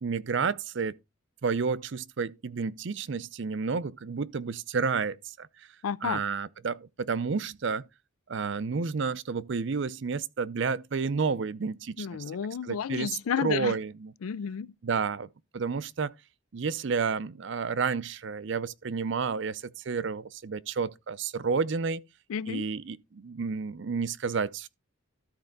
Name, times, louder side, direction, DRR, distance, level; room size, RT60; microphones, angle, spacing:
voice 1, 0.0-1.0 1.4-5.7 6.0-7.8 8.3-12.1 12.6-14.1 14.8-16.1 16.5-22.0 22.5-24.7, right 5 dB, 60° right, 0.5 m, -31 dB
voice 2, 5.8-6.2 12.0-13.8 14.2-14.7 22.3-22.7, left 7 dB, 80° left, 0.4 m, -31 dB
13.0 x 4.4 x 3.9 m
head